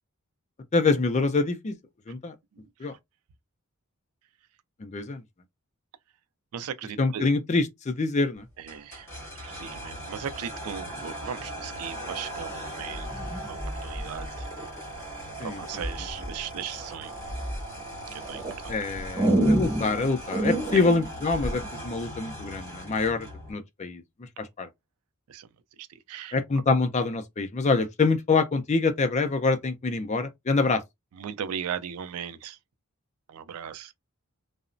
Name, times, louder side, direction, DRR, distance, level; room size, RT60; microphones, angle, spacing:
voice 1, 0.7-1.7 2.1-2.3 2.8-2.9 4.8-5.2 7.0-8.4 15.4-15.6 18.7-24.0 24.4-24.7 26.3-30.8, left 3 dB, 30° left, 0.4 m, -25 dB
voice 2, 2.5-3.0 6.5-7.3 8.6-9.1 9.3-14.5 15.4-17.1 18.1-18.8 20.7-20.9 25.3-25.5 25.8-26.4 31.1-32.6 33.3-33.9, right 8 dB, 80° right, 0.4 m, -38 dB
sound 1, 8.7-23.5, right 1 dB, 10° left, 1.8 m, -39 dB
sound 2, 12.9-14.8 15.8-16.3 16.8-17.6 18.2-21.6, right 1 dB, 15° right, 1.3 m, -28 dB
2.9 x 2.0 x 2.5 m
head